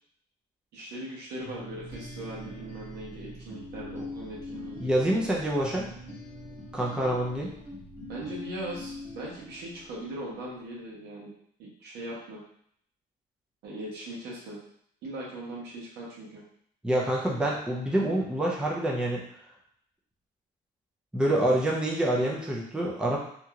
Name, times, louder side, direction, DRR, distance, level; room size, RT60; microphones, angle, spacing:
voice 1, 0.7-4.9 8.1-11.3 11.6-12.4 13.6-14.6 15.0-16.4, right 1 dB, 75° right, -4 dB, 1.1 m, -39 dB
sound 1, 1.4-10.1, left 1 dB, 15° left, 1.4 m, -43 dB
voice 2, 4.8-5.8 6.7-7.5 16.8-19.2 21.1-23.2, right 1 dB, 5° right, -3 dB, 0.5 m, -26 dB
2.8 x 2.8 x 2.4 m, 0.66 s
cardioid pair, 110°, 17 cm